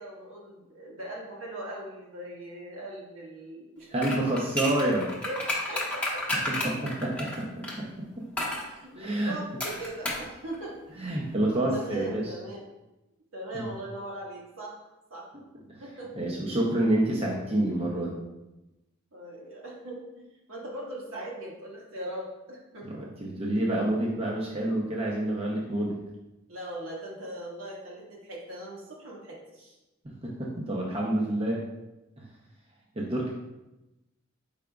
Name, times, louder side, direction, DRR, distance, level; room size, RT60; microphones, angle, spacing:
voice 1, 0.0-3.9 5.2-6.2 8.7-10.8 11.7-12.6 13.3-15.2 15.8-16.1 16.4-16.7 17.5-17.7 19.1-22.9 26.5-29.8, right 1 dB, 75° right, -4 dB, 1.3 m, -40 dB
voice 2, 3.9-5.1 6.6-8.2 9.0-9.3 11.0-12.2 13.5-13.6 15.7-15.8 16.2-18.2 22.8-26.0 30.0-31.6 32.2-32.3 33.0-33.3, right 1 dB, 30° right, -3 dB, 0.6 m, -28 dB
sound 1, 4.0-7.8 8.4-8.7 9.6-10.3 10.5-10.6, left 1 dB, 5° left, 0.8 m, -31 dB
4.9 x 4.7 x 2.3 m, 0.99 s
head